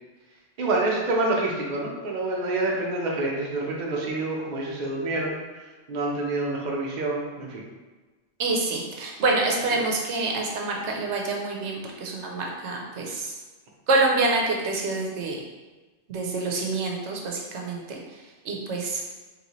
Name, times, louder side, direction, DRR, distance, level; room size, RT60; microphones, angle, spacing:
voice 1, 0.6-5.4 5.9-7.7 9.7-9.8, right 2 dB, 45° right, -2 dB, 0.8 m, -27 dB
voice 2, 8.4-13.3 13.9-15.4 16.1-18.0 18.4-19.0, right 3 dB, 85° right, 0 dB, 1.0 m, -26 dB
4.0 x 3.1 x 3.0 m, 1.2 s
omnidirectional pair, 1.1 m